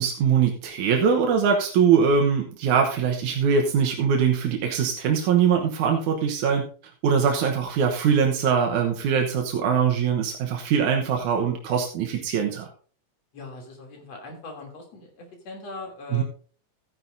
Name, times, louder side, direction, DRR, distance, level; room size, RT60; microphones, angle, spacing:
voice 1, 0.0-6.6 7.0-12.7 16.1-16.2, right 6 dB, 90° right, 2 dB, 2.6 m, -22 dB
voice 2, 13.3-16.2, left 3 dB, 60° left, 1 dB, 4.0 m, -40 dB
14.0 x 10.5 x 2.6 m, 0.41 s
omnidirectional pair, 3.3 m